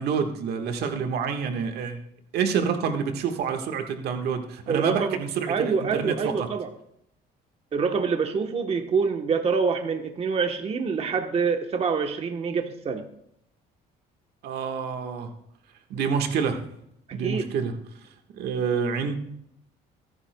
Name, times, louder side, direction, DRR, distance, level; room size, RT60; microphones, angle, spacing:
voice 1, 0.0-2.0 2.3-6.5 14.4-15.3 15.9-16.6 17.1-17.7 18.4-19.2, right 6 dB, 75° right, 5 dB, 1.4 m, -27 dB
voice 2, 4.7-5.2 5.5-6.7 7.7-13.0 17.1-17.5, right 5 dB, 35° right, 5 dB, 1.0 m, -26 dB
22.0 x 9.8 x 2.2 m, 0.75 s
cardioid pair, 110°, 17 cm